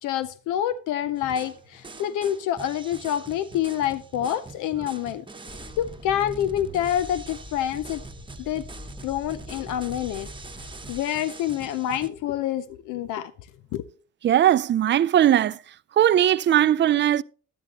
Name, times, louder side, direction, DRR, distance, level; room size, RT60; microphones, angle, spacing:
voice 1, 0.0-5.2 5.8-8.0 8.4-8.6 9.0-10.3 10.9-13.3 13.7-13.8, left 11 dB, 90° left, 0.6 m, -27 dB
sound 1, 1.2-12.1, right 3 dB, 15° right, 1.0 m, -43 dB
sound 2, 5.5-11.0, left 2 dB, 15° left, 1.0 m, -44 dB
voice 2, 14.2-15.6 16.0-17.2, right 11 dB, 40° right, 0.4 m, -19 dB
11.0 x 10.5 x 2.9 m
cardioid pair, 90°, 30 cm